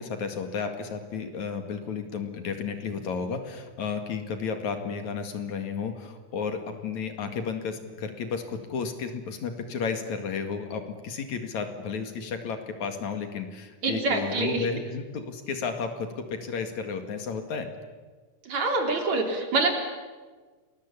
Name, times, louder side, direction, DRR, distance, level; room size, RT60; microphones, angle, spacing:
voice 1, 0.0-17.7, left 5 dB, 65° left, 6 dB, 3.3 m, -33 dB
voice 2, 13.8-14.6 18.4-19.7, right 3 dB, 60° right, 3 dB, 4.6 m, -26 dB
29.5 x 21.0 x 8.6 m, 1.4 s
omnidirectional pair, 3.6 m